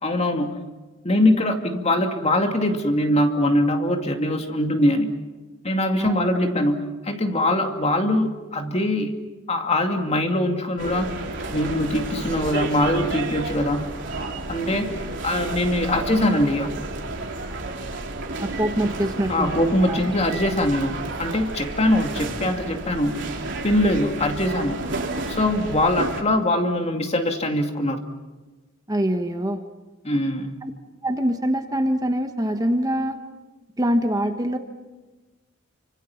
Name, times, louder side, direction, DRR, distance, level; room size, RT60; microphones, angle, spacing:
voice 1, 0.0-0.6 1.0-5.1 5.6-9.1 9.5-11.1 11.5-13.8 14.5-15.0 15.2-16.7 19.3-23.2 23.6-24.8 25.3-28.0 30.0-30.6, left 1 dB, 30° left, 4 dB, 2.4 m, -22 dB
sound 1, 10.8-26.2, right 2 dB, 60° right, 3.3 m, -31 dB
voice 2, 18.4-20.0 28.9-29.6 30.6-30.7 31.0-33.2 33.8-34.6, equal, 20° right, 6 dB, 1.2 m, -24 dB
29.5 x 25.5 x 5.9 m, 1.2 s
head